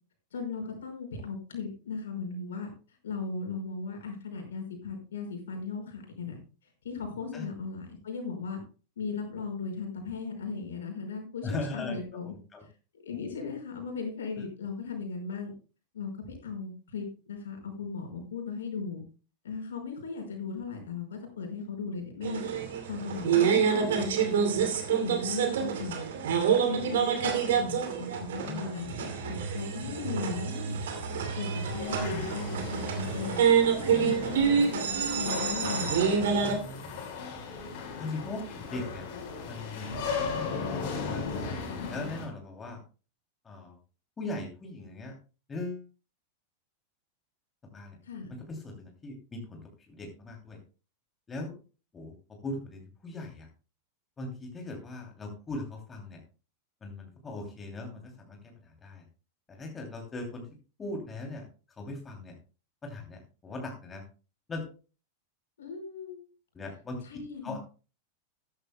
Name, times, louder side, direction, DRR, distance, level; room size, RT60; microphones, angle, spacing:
voice 1, 0.3-2.7 3.0-6.4 6.8-8.6 9.0-12.3 13.0-15.5 15.9-19.0 19.4-22.5 22.9-24.6 25.0-26.1 26.4-30.8 31.3-33.4 33.8-36.3 48.0-48.4 65.6-66.2 67.0-67.6, left 5 dB, 65° left, 3 dB, 5.1 m, -37 dB
voice 2, 11.4-12.0 12.3-12.6 28.4-29.1 33.9-34.1 36.4-36.9 38.0-39.1 39.5-41.5 41.9-42.8 43.4-43.8 44.2-45.1 45.5-45.9 47.7-48.0 48.4-50.6 51.3-51.5 51.9-53.5 54.2-56.2 56.8-59.0 59.5-60.5 60.8-62.3 62.8-64.0 64.5-64.6 66.5-67.0 67.4-67.6, left 2 dB, 20° left, 1 dB, 2.8 m, -39 dB
sound 1, 22.2-36.6, right 7 dB, 60° right, 2.5 m, -27 dB
sound 2, 31.5-42.3, left 5 dB, 50° left, 4.5 m, -36 dB
14.0 x 13.5 x 2.2 m, 0.34 s
figure-of-eight pair, 90°, 0 cm